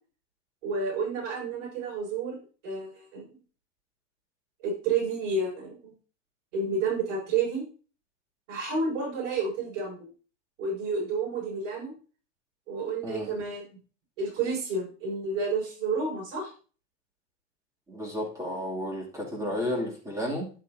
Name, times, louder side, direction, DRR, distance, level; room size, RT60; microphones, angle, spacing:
voice 1, 0.6-2.4 2.6-3.4 4.6-5.9 6.5-7.6 8.5-10.1 10.6-11.9 12.7-13.7 14.2-16.5, right 4 dB, 70° right, 5.8 m, -30 dB
voice 2, 13.0-13.3 17.9-20.5, left 1 dB, 10° right, 2.6 m, -32 dB
11.0 x 8.4 x 2.7 m
supercardioid pair, 160°, 37 cm